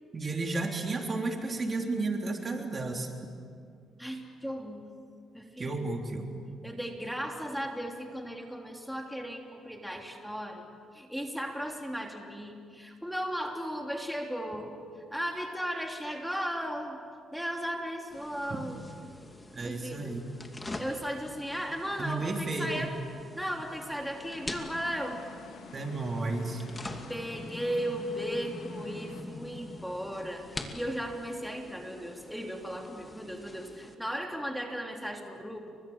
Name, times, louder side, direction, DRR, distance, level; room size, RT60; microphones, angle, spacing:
voice 1, 0.1-3.1 5.6-6.4 19.5-20.3 22.0-22.9 25.7-26.6, right 3 dB, 35° right, 2 dB, 3.5 m, -32 dB
voice 2, 4.0-4.8 5.3-5.9 6.6-10.7 10.9-17.0 17.3-18.8 19.6-20.1 20.8-23.0 23.3-25.2 27.1-35.7, equal, ahead, 1 dB, 3.2 m, -36 dB
sound 1, 18.1-33.9, left 2 dB, 15° left, 2.6 m, -45 dB
sound 2, 24.2-29.2, left 5 dB, 90° left, 3.4 m, -49 dB
29.5 x 24.5 x 7.3 m, 2.2 s
cardioid pair, 90°, 0 cm